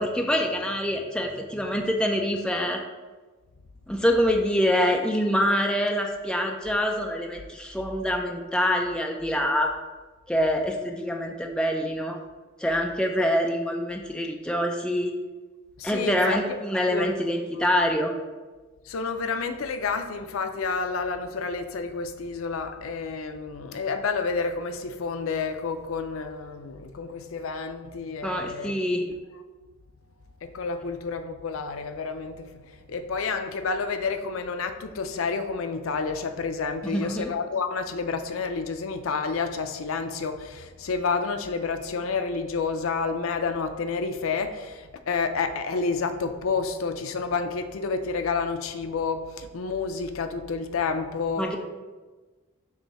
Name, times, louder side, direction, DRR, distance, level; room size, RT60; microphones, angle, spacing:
voice 1, 0.0-2.8 3.9-9.7 10.3-12.2 12.6-15.1 15.8-18.1 28.2-29.0 36.9-37.3 51.4-51.6, equal, 5° left, 2 dB, 0.4 m, -25 dB
voice 2, 15.8-16.4 16.9-17.1 17.6-17.7 18.9-28.7 29.0-29.2 30.4-51.6, left 4 dB, 80° left, 8 dB, 0.5 m, -29 dB
7.0 x 2.7 x 5.6 m, 1.3 s
head